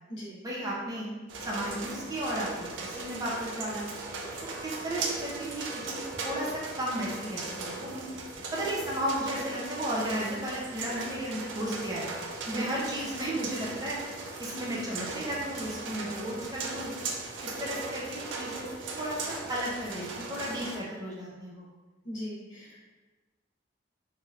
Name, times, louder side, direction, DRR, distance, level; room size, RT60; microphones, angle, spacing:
voice 1, 0.4-1.1 1.4-3.9 4.4-8.0 8.5-12.1 12.5-14.0 14.4-16.9 17.4-18.6 18.9-21.7, right 1 dB, 20° right, -5 dB, 0.5 m, -34 dB
sound 1, 1.3-20.8, right 3 dB, 80° right, 0.4 m, -38 dB
voice 2, 22.0-22.8, equal, 75° left, -6 dB, 1.1 m, -38 dB
3.1 x 2.7 x 2.3 m, 1.2 s
head